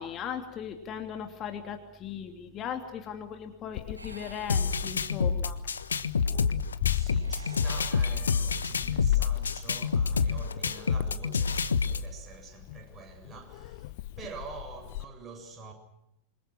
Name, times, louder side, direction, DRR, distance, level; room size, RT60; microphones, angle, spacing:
voice 1, 0.0-5.6, left 8 dB, 30° left, 3.1 m, -38 dB
Meow, 3.7-15.0, left 16 dB, 50° left, 0.9 m, -37 dB
sound 1, 4.0-5.4 7.0-8.9, right 1 dB, 80° right, 4.1 m, -51 dB
sound 2, 4.5-12.1, left 5 dB, 70° left, 1.3 m, -28 dB
voice 2, 6.8-15.7, right 4 dB, 25° right, 7.6 m, -46 dB
27.5 x 26.0 x 6.3 m
figure-of-eight pair, 90°, 0 cm